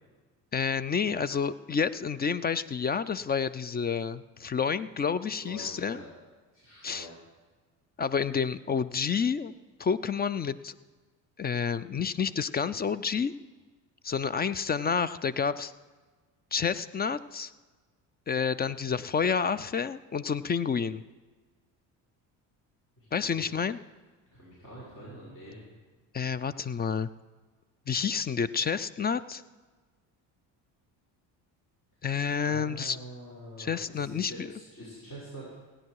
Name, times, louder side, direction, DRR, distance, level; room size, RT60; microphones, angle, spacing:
voice 1, 0.5-6.0 6.8-7.1 8.0-9.5 9.8-10.8 11.4-13.3 14.0-15.7 16.5-17.5 18.3-21.0 23.1-23.8 26.1-27.1 27.9-29.4 32.0-33.0 33.6-34.5, left 6 dB, 25° left, 17 dB, 0.4 m, -29 dB
voice 2, 5.4-6.1 6.5-7.2 23.0-23.5 24.3-25.6 32.4-35.5, right 1 dB, 45° left, -8 dB, 5.5 m, -45 dB
17.0 x 9.9 x 4.7 m, 1.4 s
supercardioid pair, 75°, 45 cm